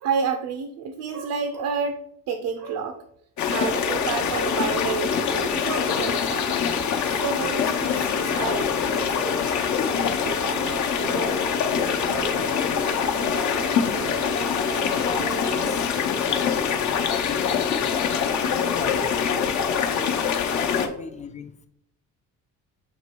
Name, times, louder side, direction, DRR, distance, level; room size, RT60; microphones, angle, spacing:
voice 1, 0.0-3.0 3.5-9.4 9.7-10.0 12.3-12.6 14.6-14.7 15.6-15.9 16.3-17.0 19.3-19.4 20.3-20.4 20.8-20.9, right 6 dB, 85° right, 7 dB, 0.7 m, -31 dB
sound 1, 3.4-20.9, left 7 dB, 60° left, 0.8 m, -24 dB
sound 2, 10.2-15.7, right 7 dB, 35° right, 0.4 m, -36 dB
voice 2, 12.3-13.2 14.5-15.9 16.2-18.1 18.8-19.9 20.5-21.7, left 6 dB, 20° left, 10 dB, 0.4 m, -38 dB
7.2 x 3.1 x 4.5 m, 0.67 s
cardioid pair, 150°, 33 cm